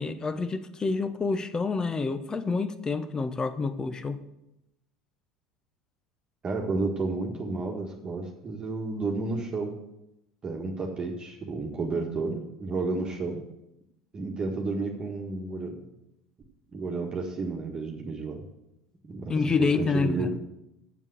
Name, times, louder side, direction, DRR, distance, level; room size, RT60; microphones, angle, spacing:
voice 1, 0.0-4.2 19.3-20.3, left 4 dB, 20° left, 12 dB, 0.9 m, -28 dB
voice 2, 6.4-9.7 10.4-13.4 14.1-15.9 16.7-18.4 19.0-20.4, right 3 dB, 30° right, 0 dB, 1.7 m, -31 dB
7.3 x 7.3 x 8.1 m, 0.87 s
hypercardioid pair, 80°, 3 cm